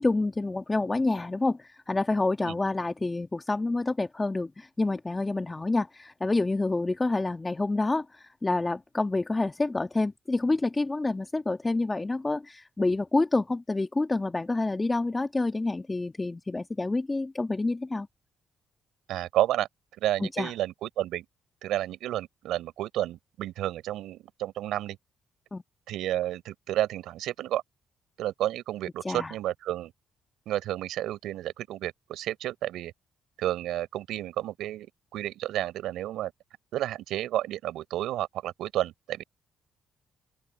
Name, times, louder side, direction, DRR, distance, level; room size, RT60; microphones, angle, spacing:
voice 1, 0.0-18.1 20.2-20.5 25.5-25.6 29.0-29.3, left 2 dB, 25° left, 1.8 m, -28 dB
voice 2, 19.1-19.7 20.0-21.3 21.6-25.0 25.9-27.6 28.2-29.9 30.5-32.9 33.4-36.3 36.7-39.2, right 13 dB, 80° right, 3.9 m, -31 dB
open air
supercardioid pair, 55°, 0 cm